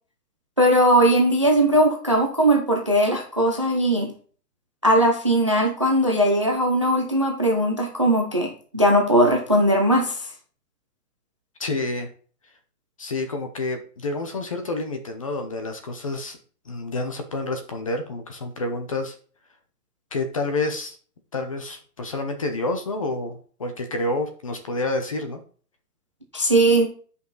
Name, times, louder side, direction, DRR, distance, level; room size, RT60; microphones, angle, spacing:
voice 1, 0.6-4.1 4.8-10.2 26.3-26.9, right 1 dB, 20° right, 0.5 m, -19 dB
voice 2, 11.6-12.1 13.0-16.4 16.7-19.1 20.1-21.0 21.3-25.4, left 2 dB, 20° left, 0.7 m, -28 dB
9.4 x 5.4 x 3.8 m
hypercardioid pair, 175°, 46 cm